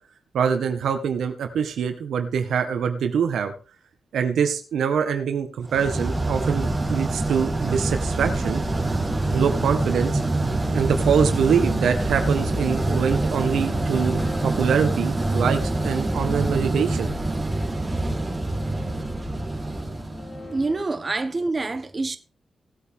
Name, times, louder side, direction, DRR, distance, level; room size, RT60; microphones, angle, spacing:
voice 1, 0.3-3.5 4.1-8.6 9.3-10.2 10.7-17.1, right 7 dB, 85° right, 1.6 m, -24 dB
sound 1, 5.7-20.7, right 2 dB, 20° right, 3.3 m, -25 dB
sound 2, 12.3-20.8, left 2 dB, 50° left, 3.3 m, -41 dB
voice 2, 20.5-22.2, right 3 dB, 35° right, 1.2 m, -26 dB
18.0 x 8.4 x 3.7 m
cardioid pair, 60°, 0 cm